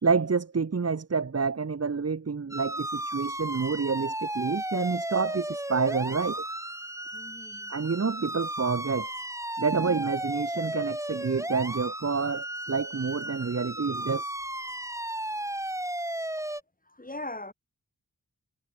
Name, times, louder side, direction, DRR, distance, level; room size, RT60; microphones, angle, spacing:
voice 1, 0.0-6.4 7.7-9.1 9.6-14.2, right 5 dB, 45° right, 1.2 m, -28 dB
sound 1, 2.5-16.6, right 1 dB, 10° right, 1.3 m, -34 dB
voice 2, 7.1-7.7 16.9-17.5, left 2 dB, 25° left, 7.8 m, -40 dB
wide cardioid pair, 60°, 33 cm